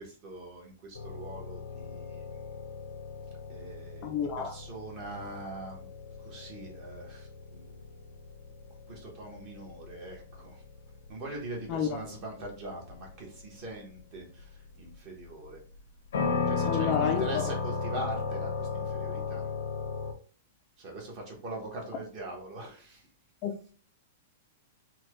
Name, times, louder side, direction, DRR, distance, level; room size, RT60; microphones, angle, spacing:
voice 1, 0.0-2.5 3.5-5.9 6.2-7.8 8.9-10.6 11.1-15.6 16.5-19.5 20.8-23.1, right 1 dB, 30° right, 1.1 m, -42 dB
sound 1, 0.9-20.1, left 5 dB, 85° left, 0.8 m, -36 dB
voice 2, 4.0-4.5 11.7-11.9 16.6-17.4 23.4-23.7, left 7 dB, 25° left, 0.4 m, -30 dB
4.2 x 2.3 x 3.1 m
supercardioid pair, 170°, 0 cm